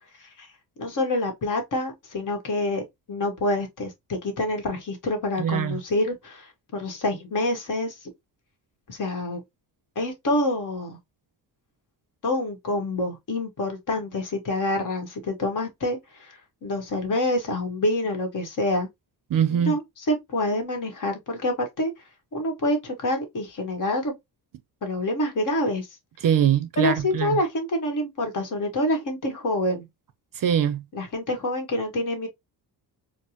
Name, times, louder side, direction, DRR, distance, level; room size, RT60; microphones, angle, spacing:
voice 1, 0.8-2.8 3.1-8.1 8.9-9.4 9.9-11.0 12.2-18.9 19.5-21.9 22.3-24.1 24.8-25.9 26.8-29.9 30.9-32.3, left 1 dB, 45° left, 1.3 m, -27 dB
voice 2, 5.4-5.8 19.3-19.8 26.2-27.4 30.4-30.8, right 9 dB, 50° right, 0.5 m, -23 dB
4.3 x 2.0 x 2.9 m
cardioid pair, 130°, 42 cm